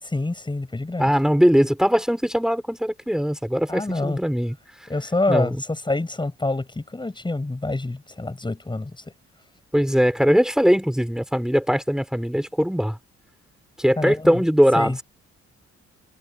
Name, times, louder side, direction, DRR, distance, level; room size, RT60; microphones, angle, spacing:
voice 1, 0.0-1.1 3.7-4.2 4.9-9.0 14.0-14.4 14.8-15.0, left 2 dB, 15° left, 7.0 m, -26 dB
voice 2, 1.0-4.5 5.3-5.6 9.7-13.0 13.8-15.0, equal, ahead, 6.9 m, -20 dB
cardioid pair, 120°, 29 cm